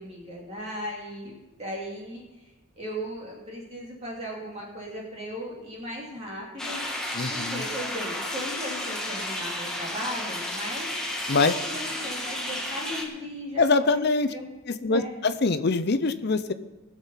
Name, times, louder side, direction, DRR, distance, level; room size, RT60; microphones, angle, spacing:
voice 1, 0.0-1.3 1.6-6.8 7.3-10.9 11.3-13.9 14.3-14.4 14.8-15.2, equal, 30° right, -3 dB, 2.7 m, -37 dB
sound 1, 6.6-13.0, left 1 dB, 5° left, 1.5 m, -32 dB
voice 2, 7.1-7.6 11.3-11.5 13.6-14.3 14.8-16.5, left 3 dB, 50° left, 10 dB, 0.6 m, -23 dB
18.5 x 7.4 x 5.7 m, 1.1 s
head